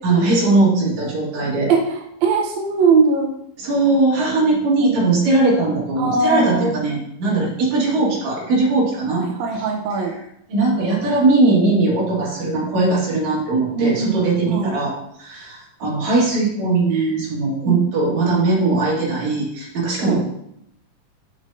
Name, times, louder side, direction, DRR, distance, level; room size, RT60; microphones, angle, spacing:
voice 1, 0.0-1.7 3.6-10.2 10.5-20.3, right 3 dB, 60° right, -3 dB, 2.9 m, -19 dB
voice 2, 2.2-3.3 4.8-4.9 6.0-6.8 9.4-10.1 13.8-14.2 14.5-14.7 17.6-17.8 20.0-20.2, right 4 dB, 75° right, 1 dB, 1.7 m, -19 dB
6.5 x 6.3 x 2.6 m, 0.76 s
omnidirectional pair, 3.8 m